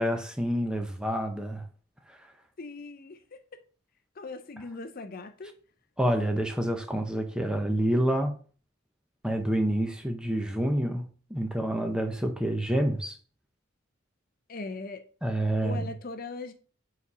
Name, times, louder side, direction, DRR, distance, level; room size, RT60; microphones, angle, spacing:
voice 1, 0.0-1.6 6.0-8.3 9.2-11.0 11.3-13.2 15.2-15.9, right 1 dB, 5° right, 0.7 m, -28 dB
voice 2, 2.6-3.6 4.2-5.5 14.5-15.0 15.6-16.5, left 3 dB, 45° left, 0.5 m, -39 dB
5.0 x 4.1 x 5.4 m
head